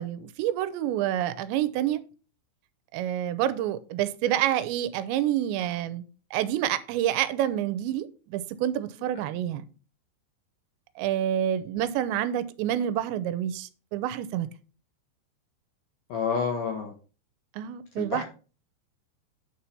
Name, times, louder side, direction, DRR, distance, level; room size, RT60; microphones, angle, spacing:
voice 1, 0.0-2.0 2.9-6.0 6.3-9.7 11.0-14.5 17.5-18.2, right 11 dB, 85° right, 2.8 m, -28 dB
voice 2, 16.1-16.9 18.0-18.2, left 6 dB, 80° left, 1.9 m, -28 dB
9.3 x 4.4 x 5.4 m
omnidirectional pair, 5.3 m